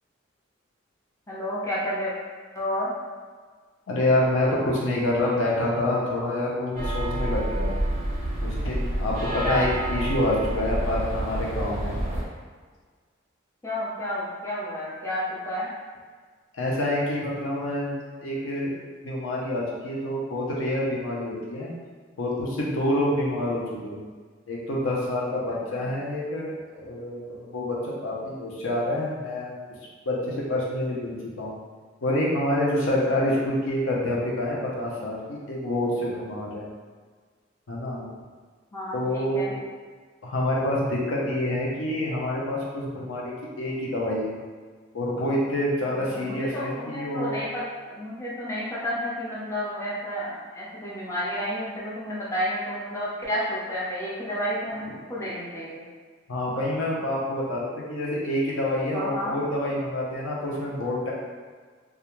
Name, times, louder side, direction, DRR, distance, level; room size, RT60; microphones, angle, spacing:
voice 1, 1.3-2.1 2.5-2.9 9.4-9.7 13.6-15.7 25.7-25.8 38.7-39.5 45.8-55.8 58.9-59.4, equal, 15° left, -8 dB, 0.5 m, -31 dB
voice 2, 3.9-7.7 8.4-12.0 16.5-18.7 19.0-21.7 22.2-24.0 24.5-29.5 30.1-31.6 32.0-36.7 37.7-38.1 38.9-39.6 40.2-44.4 44.9-47.4 56.3-61.1, left 1 dB, 90° left, -4 dB, 0.6 m, -27 dB
sound 1, 6.8-12.2, right 1 dB, 40° right, 0.5 m, -28 dB
2.4 x 2.1 x 2.9 m, 1.5 s
head